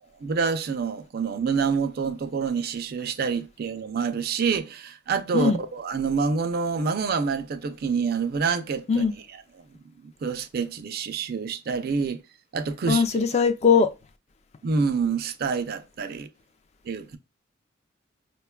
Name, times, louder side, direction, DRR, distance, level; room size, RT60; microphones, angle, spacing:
voice 1, 0.2-9.1 10.0-12.2 12.5-13.0 13.3-13.4 14.6-16.3 16.8-17.2, right 5 dB, 50° right, 0.4 m, -27 dB
voice 2, 12.9-13.9, left 5 dB, 35° left, 0.3 m, -20 dB
4.9 x 2.2 x 2.2 m
head